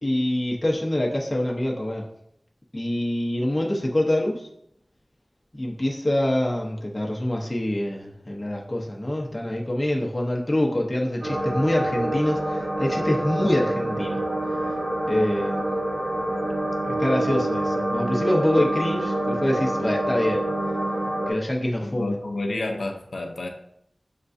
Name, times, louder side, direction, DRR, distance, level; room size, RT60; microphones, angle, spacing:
voice 1, 0.0-2.1 2.7-4.4 5.6-14.2 15.1-15.7 17.0-20.5 21.3-22.2, left 1 dB, 30° left, -1 dB, 0.8 m, -25 dB
sound 1, 11.2-21.3, right 1 dB, 90° right, 0.9 m, -26 dB
voice 2, 21.5-23.5, left 2 dB, 85° left, 2 dB, 0.6 m, -30 dB
6.5 x 2.3 x 2.6 m, 0.71 s
wide cardioid pair, 60°, 0 cm